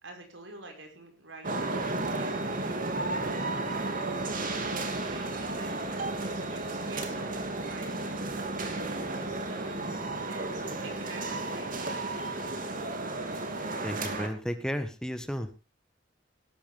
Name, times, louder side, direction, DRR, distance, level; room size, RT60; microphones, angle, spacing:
voice 1, 0.0-3.2 4.0-8.1 8.3-10.0 10.3-12.3, right 2 dB, 85° right, 4 dB, 5.5 m, -48 dB
sound 1, 1.4-14.3, right 2 dB, 45° right, 2.7 m, -33 dB
voice 2, 13.8-15.5, equal, 5° left, 8 dB, 1.4 m, -33 dB
17.5 x 13.0 x 3.5 m, 0.28 s
head